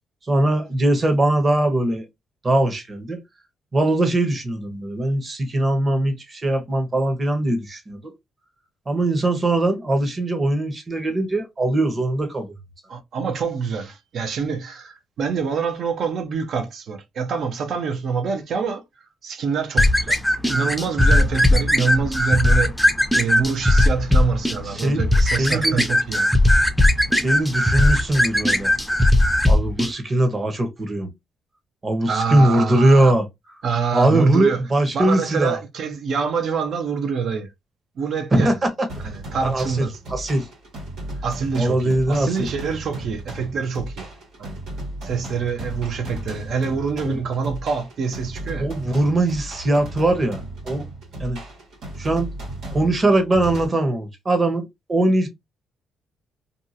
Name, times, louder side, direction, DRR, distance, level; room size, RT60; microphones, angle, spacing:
voice 1, 0.3-2.0 2.4-3.2 3.7-8.1 8.9-12.5 24.7-25.8 27.2-28.7 29.5-31.1 31.8-33.2 33.9-35.6 38.3-38.9 39.4-40.5 41.5-42.5 47.0-47.2 48.6-50.4 50.6-50.9 51.2-51.4 52.0-52.3 52.7-55.3, right 1 dB, 30° right, 1.0 m, -21 dB
voice 2, 12.9-18.8 19.2-20.2 20.5-22.7 23.1-26.3 32.1-33.1 33.6-34.6 34.9-37.5 38.0-38.6 39.0-40.0 41.2-44.1 44.4-44.6 45.0-48.7, right 5 dB, 65° right, 0.7 m, -26 dB
sound 1, 19.8-29.9, left 1 dB, ahead, 0.5 m, -18 dB
sound 2, 38.9-53.7, right 1 dB, 80° right, 1.6 m, -35 dB
2.7 x 2.4 x 2.6 m
cardioid pair, 90°, 0 cm